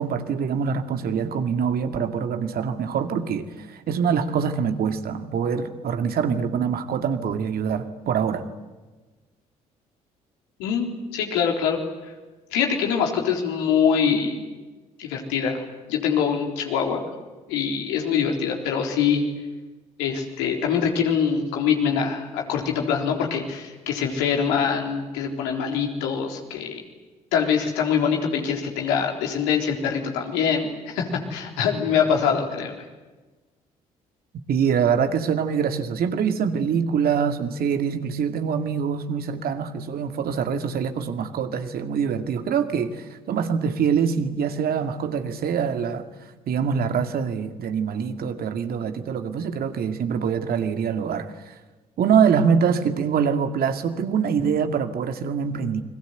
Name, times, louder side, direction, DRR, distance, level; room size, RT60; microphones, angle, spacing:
voice 1, 0.0-8.4 34.5-46.0 46.5-51.5 52.0-55.8, right 7 dB, 60° right, 7 dB, 2.2 m, -24 dB
voice 2, 10.6-11.8 12.5-14.4 15.0-17.0 17.5-19.2 20.0-26.8 27.3-32.8, left 7 dB, 75° left, 2 dB, 4.0 m, -24 dB
30.0 x 21.5 x 8.2 m, 1.2 s
hypercardioid pair, 50°, 18 cm